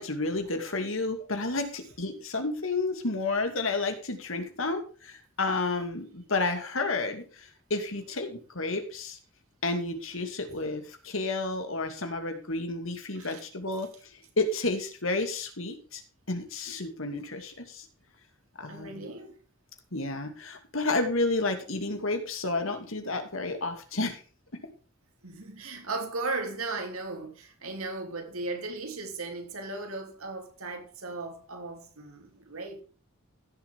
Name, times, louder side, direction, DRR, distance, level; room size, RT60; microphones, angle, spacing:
voice 1, 0.0-9.2 9.6-13.9 14.4-16.0 16.3-17.9 18.6-19.1 19.9-24.2, left 3 dB, 65° left, 2.5 m, -31 dB
voice 2, 18.7-19.4 25.2-32.8, right 3 dB, 85° right, 3.2 m, -36 dB
16.0 x 7.4 x 3.6 m
head